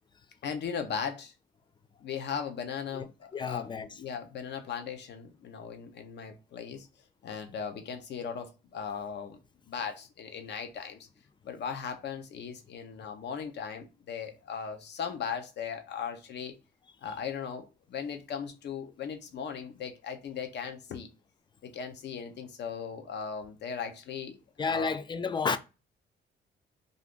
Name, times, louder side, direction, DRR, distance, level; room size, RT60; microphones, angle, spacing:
voice 1, 0.4-1.3 2.0-6.9 7.2-9.4 9.7-11.1 11.4-16.5 17.0-21.1 21.6-24.4 24.7-24.9, left 7 dB, 60° left, 0.7 m, -38 dB
voice 2, 2.9-3.9 24.6-25.6, left 5 dB, 25° left, 0.4 m, -31 dB
2.6 x 2.5 x 3.5 m
cardioid pair, 90°, 20 cm